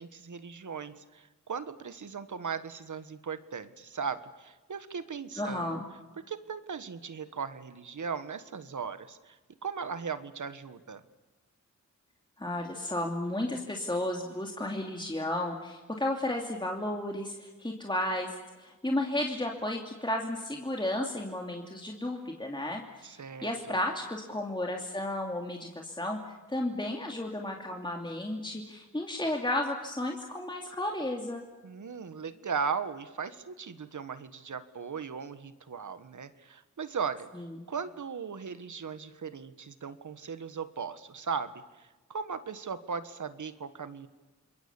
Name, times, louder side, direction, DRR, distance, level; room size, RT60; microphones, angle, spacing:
voice 1, 0.0-5.8 6.3-11.0 23.0-23.8 31.6-37.3 37.7-41.5 41.8-44.1, right 6 dB, 75° right, 12 dB, 1.5 m, -38 dB
voice 2, 5.4-5.8 12.4-26.2 26.5-31.4 37.3-37.5, left 1 dB, 15° left, 1 dB, 2.9 m, -33 dB
27.5 x 22.0 x 7.1 m, 1.2 s
cardioid pair, 55°, 31 cm